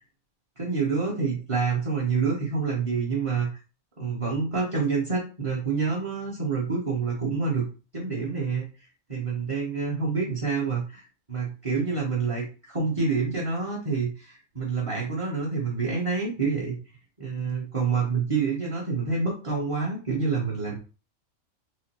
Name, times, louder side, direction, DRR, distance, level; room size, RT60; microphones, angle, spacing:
voice 1, 0.6-3.5 4.0-7.6 7.9-8.6 9.1-16.8 17.2-20.8, right 4 dB, 25° right, -4 dB, 0.8 m, -27 dB
5.9 x 2.0 x 2.9 m, 0.34 s
omnidirectional pair, 1.5 m